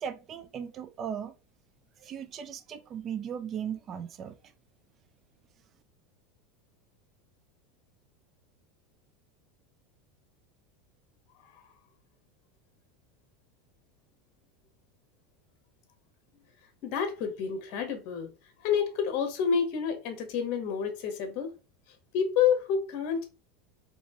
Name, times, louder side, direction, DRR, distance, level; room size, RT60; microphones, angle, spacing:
voice 1, 0.0-1.3 2.0-4.4, right 8 dB, 35° right, 0.5 m, -37 dB
voice 2, 16.8-18.3 18.6-21.5 22.1-23.2, left 7 dB, 55° left, 1.2 m, -28 dB
4.2 x 2.9 x 2.9 m
supercardioid pair, 130°, 0 cm